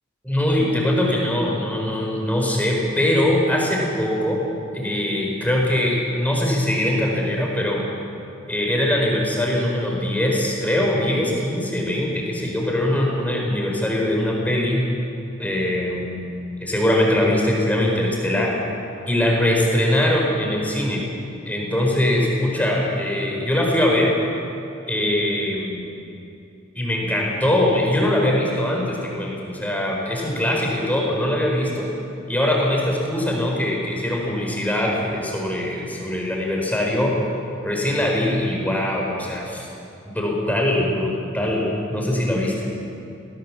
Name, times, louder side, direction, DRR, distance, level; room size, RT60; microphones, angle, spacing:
voice 1, 0.2-4.4 4.7-7.8 8.5-14.9 15.4-16.2 16.6-18.5 19.1-21.0 21.5-24.2 24.9-25.9 26.7-31.9 32.3-37.2 37.6-39.7 40.1-42.7, left 1 dB, 10° left, -1 dB, 4.4 m, -22 dB
19.0 x 18.5 x 7.3 m, 2.7 s
head